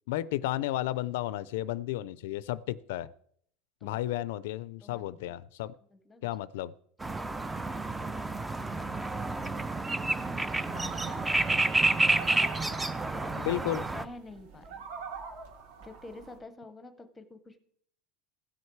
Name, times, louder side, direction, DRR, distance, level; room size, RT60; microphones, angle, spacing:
voice 1, 0.1-3.1 3.8-5.7 6.2-6.7 13.5-13.9, left 14 dB, 75° left, 19 dB, 0.4 m, -33 dB
voice 2, 3.8-4.2 4.8-5.4 5.9-6.3 7.2-9.5 9.9-10.9 11.3-12.4 12.9-13.6 13.9-14.9 15.8-17.6, left 2 dB, 10° left, 10 dB, 0.8 m, -49 dB
sound 1, 7.0-14.1, right 2 dB, 10° right, 0.4 m, -30 dB
sound 2, 10.5-16.4, right 5 dB, 65° right, 2.8 m, -45 dB
16.0 x 6.5 x 4.5 m, 0.65 s
cardioid pair, 175°, 0 cm